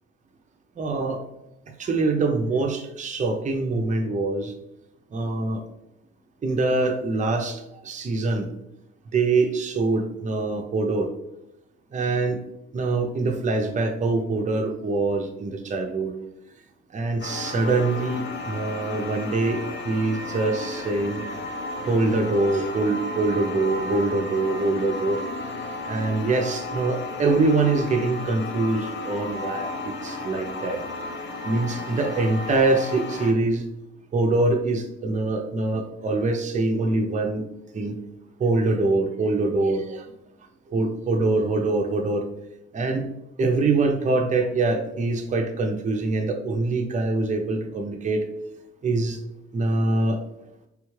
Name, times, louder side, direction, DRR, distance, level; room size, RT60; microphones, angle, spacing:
voice 1, 0.8-1.2 1.7-4.5 5.1-5.6 6.4-8.5 9.1-11.1 11.9-12.4 12.7-16.1 16.9-21.2 21.9-25.2 25.9-30.8 31.4-33.6 34.1-37.4 37.7-38.0 38.4-40.1 40.7-42.2 42.7-43.1 43.4-48.2 48.8-49.2 49.5-50.2, right 3 dB, 25° right, 4 dB, 0.5 m, -24 dB
sound 1, 17.2-33.3, left 3 dB, 40° left, 0.5 m, -33 dB
3.4 x 2.3 x 3.1 m, 0.86 s
cardioid pair, 90°, 30 cm